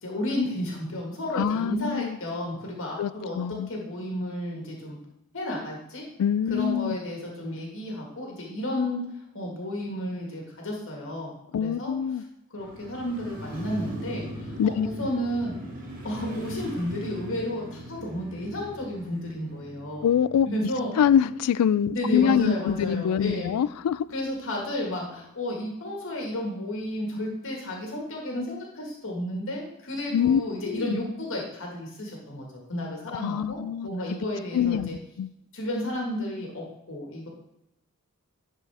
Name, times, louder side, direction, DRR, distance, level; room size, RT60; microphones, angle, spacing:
voice 1, 0.0-3.4 3.7-5.0 5.3-6.1 6.5-9.0 9.3-11.9 12.5-15.5 16.0-20.1 20.5-20.9 21.9-23.6 24.1-35.0 35.5-37.3, left 1 dB, 60° left, 1.8 m, -32 dB
voice 2, 1.3-2.2 3.0-3.7 6.2-7.0 11.5-12.2 14.6-14.9 20.0-20.5 21.0-24.1 30.1-30.4 30.7-31.0 33.1-33.9 34.5-35.3, left 8 dB, 85° left, 0.3 m, -24 dB
Motorcycle, 12.6-22.7 23.0-23.1, equal, 40° right, 1.9 m, -41 dB
11.0 x 4.5 x 3.5 m
head